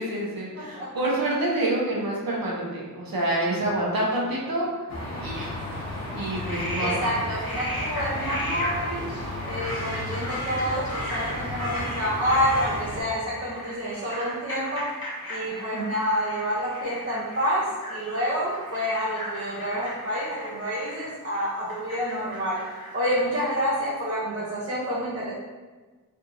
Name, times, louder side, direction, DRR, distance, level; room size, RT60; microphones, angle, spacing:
voice 1, 0.0-4.7 5.2-5.5 6.1-7.1, right 1 dB, 80° right, -4 dB, 0.9 m, -27 dB
voice 2, 0.6-0.9 6.8-9.0 9.4-14.9 15.3-22.6 22.9-25.3, equal, 40° right, -8 dB, 0.8 m, -28 dB
sound 1, 4.9-13.0, left 1 dB, 50° left, 1.0 m, -33 dB
Frog, 6.2-23.7, equal, 90° left, 1.0 m, -37 dB
3.4 x 2.8 x 2.6 m, 1.3 s
wide cardioid pair, 80°, 35 cm